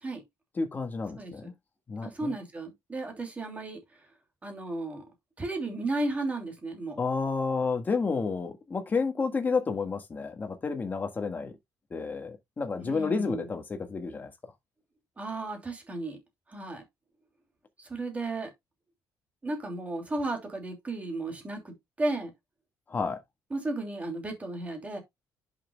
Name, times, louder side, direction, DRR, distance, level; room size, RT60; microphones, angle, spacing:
voice 1, 0.5-1.5 1.9-2.3 7.0-11.5 11.9-14.3 22.9-23.2, left 4 dB, 25° left, 1.7 m, -30 dB
voice 2, 2.0-3.8 4.4-5.0 5.4-7.0 12.8-13.4 15.2-16.2 16.5-16.8 17.8-18.5 19.4-22.3 23.5-25.0, right 2 dB, 20° right, 2.9 m, -34 dB
10.5 x 6.0 x 2.3 m
cardioid pair, 130°, 7 cm